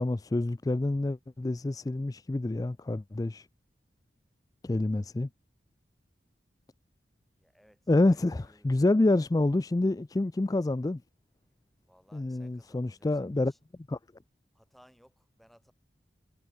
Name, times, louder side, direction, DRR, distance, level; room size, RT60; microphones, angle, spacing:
voice 1, 0.0-3.5 4.6-5.3 7.9-11.0 12.1-13.5 13.9-14.0, left 2 dB, 20° left, 0.3 m, -27 dB
voice 2, 7.4-8.9 11.9-13.6 14.5-15.7, equal, ahead, 6.6 m, -62 dB
head